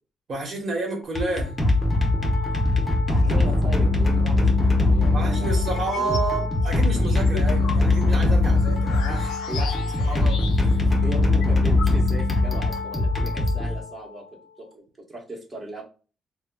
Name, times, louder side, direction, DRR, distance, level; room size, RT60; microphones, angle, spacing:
voice 1, 0.3-1.6 5.1-9.7 10.1-10.4 10.7-11.0, right 3 dB, 55° right, 1 dB, 1.1 m, -30 dB
sound 1, 1.0-14.2, left 2 dB, 20° left, 0.8 m, -21 dB
Thunder, 2.9-5.2, right 1 dB, 90° right, 0.8 m, -37 dB
voice 2, 3.1-4.5 4.8-6.2 9.5-10.2 10.8-14.2 14.6-15.8, right 1 dB, 25° right, -2 dB, 1.1 m, -38 dB
sound 2, 5.7-6.3 6.7-10.9 11.1-11.2 11.4-12.4, left 6 dB, 85° left, 0.4 m, -37 dB
4.0 x 2.1 x 2.3 m, 0.36 s
cardioid pair, 90°, 0 cm